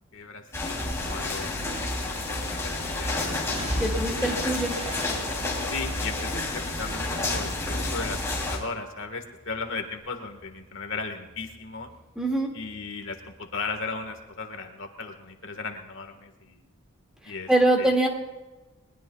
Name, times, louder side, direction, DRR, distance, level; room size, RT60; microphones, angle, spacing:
voice 1, 0.1-1.5 2.1-3.3 4.6-5.0 5.7-8.2 8.5-11.9 12.5-16.6 17.2-17.5 17.8-17.9, left 4 dB, 60° left, 5 dB, 1.6 m, -36 dB
sound 1, 0.5-8.6, left 2 dB, 15° left, 3.1 m, -30 dB
sound 2, 2.3-2.7 3.5-7.8 8.1-8.7 9.1-12.4 12.6-13.8 14.0-14.2, equal, 30° right, 5.2 m, -40 dB
voice 2, 3.8-4.7 12.2-12.5 17.2-18.1, right 1 dB, 5° right, 0 dB, 2.1 m, -23 dB
21.0 x 21.0 x 2.3 m, 1.2 s
head